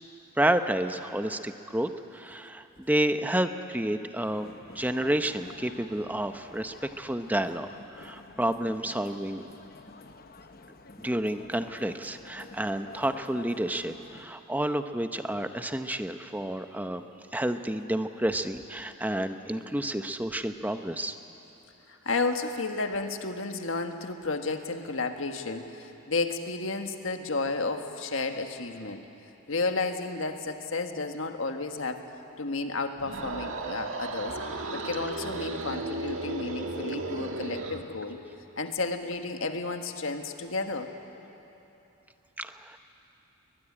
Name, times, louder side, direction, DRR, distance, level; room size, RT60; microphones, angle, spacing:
voice 1, 0.4-9.5 11.0-17.0 17.3-21.2 42.4-42.8, right 1 dB, 10° right, 8 dB, 0.7 m, -30 dB
sound 1, 4.2-14.2, left 3 dB, 45° left, 1.0 m, -49 dB
voice 2, 21.9-29.0 29.5-32.0 32.4-34.4 34.7-38.2 38.6-40.9, left 3 dB, 65° left, 6 dB, 1.6 m, -32 dB
sound 2, 32.9-37.9, right 2 dB, 65° right, 1.9 m, -35 dB
22.0 x 21.5 x 9.8 m, 3.0 s
head